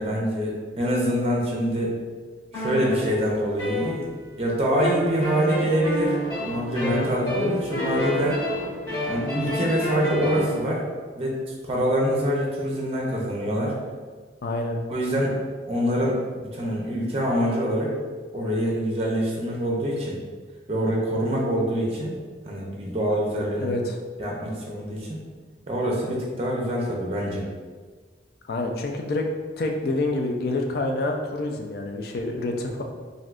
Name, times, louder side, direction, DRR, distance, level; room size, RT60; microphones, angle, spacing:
voice 1, 0.0-2.0 2.5-4.1 4.4-8.4 9.1-10.9 11.2-11.4 11.6-13.7 14.9-15.4 15.7-18.0 18.3-20.2 20.7-22.1 22.4-23.7 24.2-25.2 25.7-27.5, equal, 30° right, -2 dB, 0.5 m, -25 dB
sound 1, 2.5-4.4 4.8-10.6, equal, 20° left, 1.2 m, -29 dB
voice 2, 14.4-14.8 23.6-23.9 28.5-29.3 29.6-32.8, left 2 dB, 55° left, 3 dB, 0.4 m, -27 dB
3.4 x 2.6 x 2.4 m, 1.5 s
head